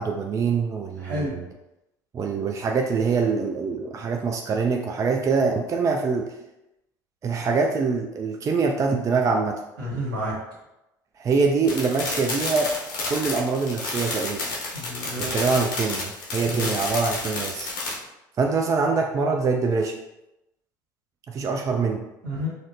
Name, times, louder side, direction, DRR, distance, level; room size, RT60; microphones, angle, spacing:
voice 1, 0.0-1.5 2.1-6.2 7.2-9.6 11.2-12.7 13.1-14.4 15.3-17.7 18.4-20.0 21.3-22.0, right 4 dB, 30° right, 2 dB, 0.4 m, -24 dB
voice 2, 1.0-1.4 9.8-10.4 14.7-15.4 16.4-16.7 22.2-22.5, equal, 80° right, -6 dB, 1.3 m, -30 dB
sound 1, 11.6-17.9, left 3 dB, 85° left, 0.9 m, -30 dB
4.1 x 2.1 x 2.6 m, 0.92 s
hypercardioid pair, 70°, 10 cm